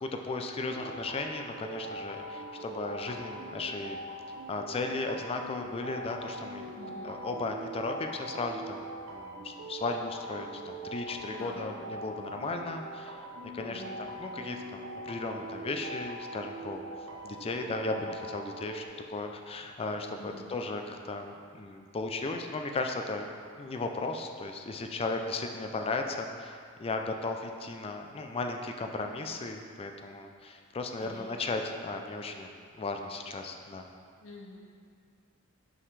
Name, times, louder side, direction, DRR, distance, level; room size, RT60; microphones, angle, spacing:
voice 1, 0.0-4.0 4.5-6.7 7.0-13.2 13.5-16.8 17.2-23.3 23.6-32.5 32.8-33.9, left 3 dB, 30° left, 4 dB, 0.4 m, -36 dB
sound 1, 0.7-18.9, right 1 dB, 75° right, 0.7 m, -42 dB
voice 2, 6.8-7.2 11.3-11.9 13.7-14.0 20.2-20.5 31.0-31.3 34.2-34.6, left 2 dB, 70° left, -2 dB, 0.9 m, -47 dB
5.7 x 5.2 x 3.2 m, 2.2 s
head